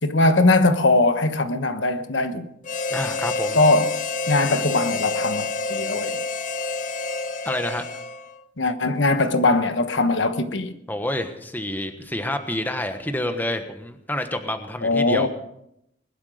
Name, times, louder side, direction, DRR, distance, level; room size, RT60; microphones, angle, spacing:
voice 1, 0.0-2.5 3.6-4.0 4.3-6.2 8.6-10.7 14.8-15.3, left 2 dB, 80° left, 1.2 m, -20 dB
Harmonica, 2.6-8.4, left 3 dB, 45° left, 0.8 m, -28 dB
voice 2, 2.9-3.6 7.4-7.9 10.9-15.3, left 1 dB, 10° left, 1.3 m, -28 dB
21.0 x 11.5 x 5.1 m
head